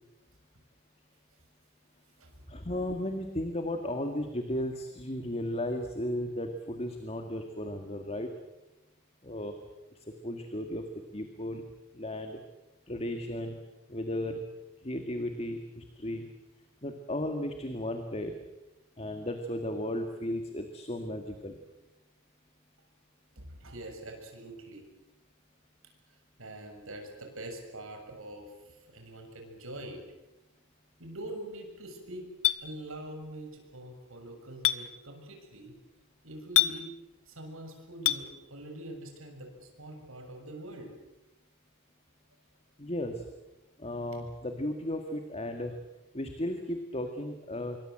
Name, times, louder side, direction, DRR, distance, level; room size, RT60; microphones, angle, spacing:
voice 1, 2.5-8.3 9.2-9.5 10.2-10.8 11.1-11.6 11.9-12.4 12.9-13.6 13.9-14.4 14.8-16.3 16.8-18.3 19.0-21.6 42.8-43.2 43.8-45.7 46.1-47.8, left 1 dB, 30° left, 6 dB, 2.1 m, -35 dB
voice 2, 23.4-24.8 26.4-30.0 31.0-32.2 32.6-35.8 36.2-36.9 37.3-40.9, right 1 dB, 75° right, 4 dB, 7.1 m, -44 dB
Chink clink, 32.4-32.6 34.6-34.8 36.6-36.7 38.1-38.2, left 15 dB, 75° left, 1.4 m, -23 dB
27.0 x 23.5 x 7.8 m, 0.98 s
head